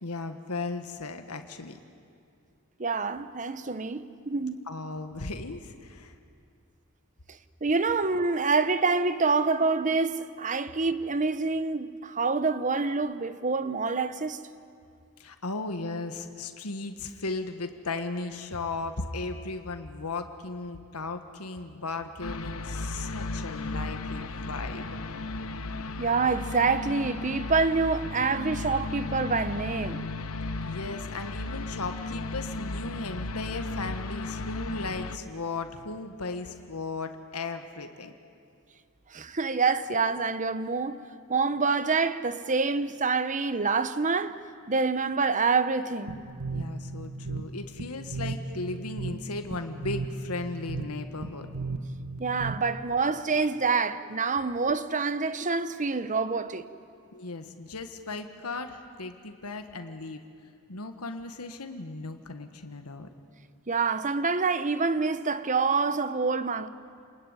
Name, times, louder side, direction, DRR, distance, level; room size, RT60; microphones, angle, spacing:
voice 1, 0.0-1.8 4.7-6.1 15.2-25.0 30.6-38.1 46.5-51.5 57.1-60.3 60.7-63.1, left 3 dB, 85° left, 1.6 m, -36 dB
voice 2, 2.8-4.6 7.6-14.4 26.0-30.0 39.1-41.0 41.3-44.4 44.7-46.2 52.2-56.7 63.7-66.7, right 4 dB, 35° right, 0.9 m, -26 dB
sound 1, 22.2-35.2, left 2 dB, 70° left, 1.1 m, -35 dB
sound 2, 46.1-52.9, right 3 dB, 75° right, 1.6 m, -36 dB
29.0 x 20.5 x 9.8 m
head